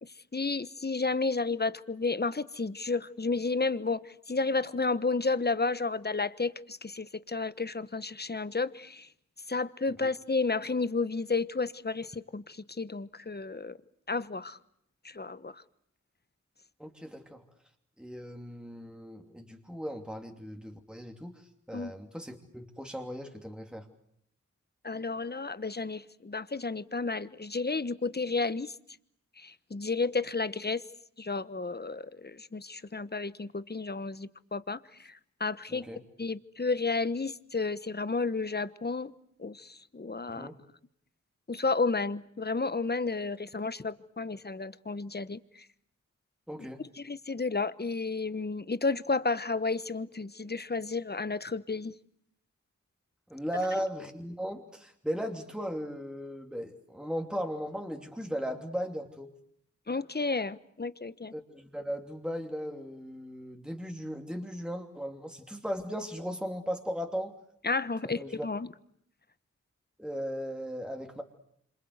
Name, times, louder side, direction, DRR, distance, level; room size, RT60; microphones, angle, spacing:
voice 1, 0.0-9.1 9.5-13.8 14.1-14.6 15.0-15.6 21.7-21.9 24.8-28.7 29.4-30.8 31.2-35.9 36.2-39.1 39.4-40.5 41.5-45.7 47.0-51.9 59.9-61.3 67.6-68.7, left 3 dB, 35° left, 1.1 m, -32 dB
voice 2, 16.8-17.4 18.0-23.9 35.7-36.0 40.4-40.5 46.5-46.8 53.3-59.3 61.3-67.3 68.0-68.5 70.0-71.2, equal, 5° right, 2.9 m, -37 dB
27.0 x 26.0 x 8.1 m
cardioid pair, 50°, 30 cm